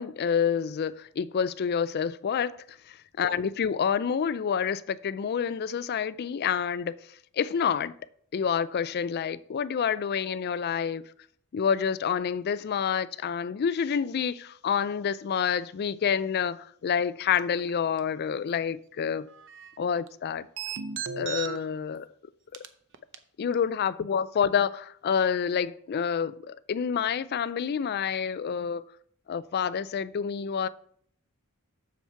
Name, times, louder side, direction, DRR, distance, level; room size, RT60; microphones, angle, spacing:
voice 1, 0.0-6.9 7.3-7.9 8.3-11.0 11.5-19.3 19.8-20.5 21.2-22.1 23.4-28.9 29.3-30.7, left 7 dB, 50° left, 0.3 m, -28 dB
sound 1, 17.2-17.7 18.0-18.1 19.2-19.7 20.0-20.1 20.6-21.6 21.9-22.0 22.5-22.7 22.9-23.1 23.5-23.6, right 6 dB, 60° right, 0.7 m, -36 dB
7.1 x 7.1 x 4.5 m
head